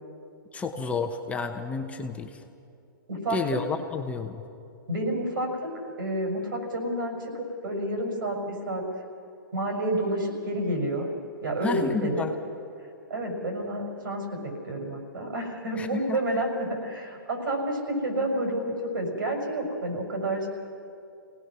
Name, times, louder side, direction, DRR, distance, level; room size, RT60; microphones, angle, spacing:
voice 1, 0.5-2.4 3.3-4.4 11.6-12.3 15.7-16.2, left 4 dB, 10° left, 4 dB, 1.0 m, -31 dB
voice 2, 3.1-3.6 4.9-5.7 6.0-8.8 9.5-11.1 11.4-12.3 13.1-20.5, right 1 dB, 70° right, 3 dB, 6.1 m, -29 dB
26.5 x 18.0 x 6.2 m, 2.5 s
hypercardioid pair, 135°, 12 cm